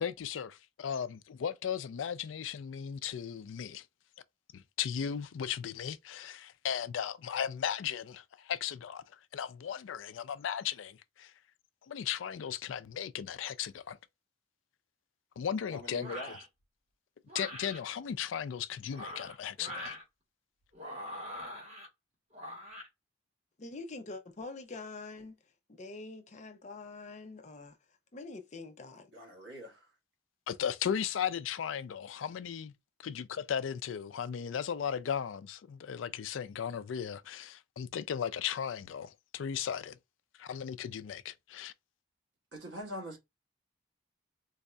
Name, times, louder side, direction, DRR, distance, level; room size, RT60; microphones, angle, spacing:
voice 1, 0.0-3.8 4.5-9.0 9.3-11.3 11.9-14.0 15.4-16.2 17.3-20.0 30.5-32.7 33.0-40.0 40.4-41.7, left 8 dB, 90° left, 0.4 m, -36 dB
voice 2, 15.7-16.4 29.1-29.9 42.5-43.2, equal, 65° right, 1.4 m, -43 dB
sound 1, 16.0-16.4 17.3-17.8 18.8-20.0 20.7-21.9 22.3-22.9, left 1 dB, 35° right, 1.4 m, -43 dB
voice 3, 23.6-25.4 25.7-29.1, left 3 dB, 40° left, 0.6 m, -45 dB
3.9 x 2.6 x 2.2 m
head